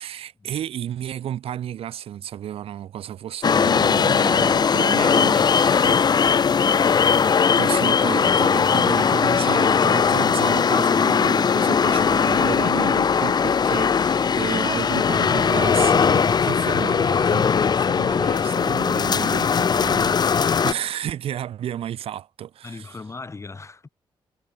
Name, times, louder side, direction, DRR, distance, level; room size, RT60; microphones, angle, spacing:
voice 1, 0.0-6.5 6.9-22.9, right 10 dB, 85° right, 1.9 m, -32 dB
sound 1, 3.4-20.7, left 6 dB, 45° left, 0.9 m, -19 dB
voice 2, 22.6-23.9, left 3 dB, 30° left, 5.4 m, -39 dB
cardioid pair, 95°, 10 cm